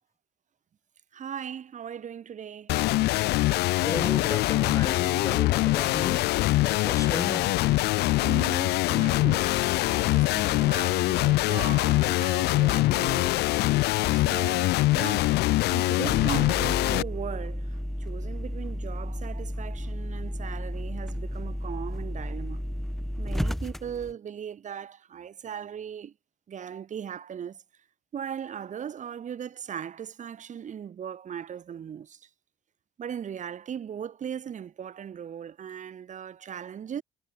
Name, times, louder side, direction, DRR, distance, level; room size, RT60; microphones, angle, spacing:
voice 1, 1.1-3.1 3.6-3.7 8.2-13.4 14.1-15.3 15.7-17.7 18.0-22.6 23.2-26.1 26.5-27.6 28.1-32.2 33.0-37.0, right 8 dB, 45° right, 6.3 m, -38 dB
sound 1, 2.7-17.0, left 19 dB, 80° left, 0.5 m, -24 dB
voice 2, 3.8-6.3 6.6-7.5, left 3 dB, 20° left, 3.0 m, -34 dB
sound 2, 16.1-24.1, equal, ahead, 2.2 m, -33 dB
cardioid pair, 110°, 17 cm